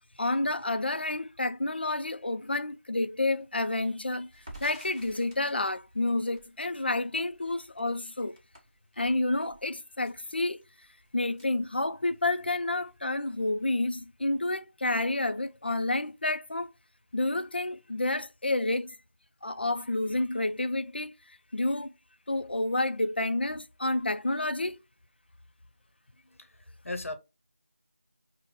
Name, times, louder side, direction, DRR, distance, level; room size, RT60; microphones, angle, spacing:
voice 1, 0.2-4.3 4.6-8.4 9.0-10.6 11.1-16.7 17.1-19.0 19.4-21.1 21.5-21.9 22.3-24.8, left 2 dB, 50° left, 0.3 m, -29 dB
Crackle, 4.3-12.4 12.7-12.9 13.2-13.9, right 1 dB, 15° right, 0.8 m, -53 dB
voice 2, 26.2-27.2, left 2 dB, 90° left, 0.7 m, -38 dB
5.6 x 2.0 x 3.5 m
figure-of-eight pair, 180°, 7 cm